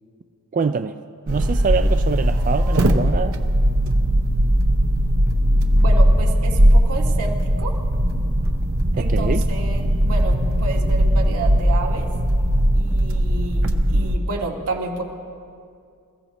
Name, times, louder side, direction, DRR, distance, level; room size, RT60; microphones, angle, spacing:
voice 1, 0.5-1.0 1.3-3.4 9.0-9.4, right 5 dB, 35° right, 9 dB, 0.3 m, -24 dB
sound 1, 1.3-14.2, equal, 65° right, 0.9 m, -19 dB
sound 2, 5.3-10.6, equal, 15° right, 0.9 m, -35 dB
voice 2, 5.8-7.8 8.9-12.1 12.7-15.0, right 3 dB, 90° right, -1 dB, 2.1 m, -30 dB
26.5 x 15.0 x 3.0 m, 2.3 s
head